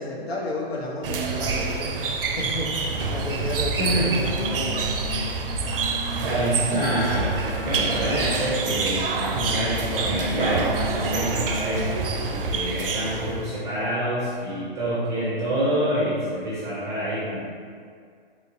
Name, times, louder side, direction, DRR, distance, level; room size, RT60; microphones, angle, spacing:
voice 1, 0.0-1.9 2.4-2.7 3.1-4.8, left 1 dB, 90° left, -2 dB, 0.8 m, -31 dB
sound 1, 1.0-13.5, right 4 dB, 65° right, 0.4 m, -27 dB
sound 2, 1.1-2.2 3.1-3.2 3.9-4.0 4.2-12.1 12.6-12.7, left 2 dB, 45° left, 1.0 m, -37 dB
voice 2, 3.8-4.1 6.2-7.3 7.6-11.9 12.3-17.4, equal, 10° right, -8 dB, 0.5 m, -27 dB
sound 3, 6.8-9.5, left 6 dB, 70° left, 1.1 m, -43 dB
3.2 x 2.5 x 2.9 m, 2.2 s
hypercardioid pair, 135°, 30 cm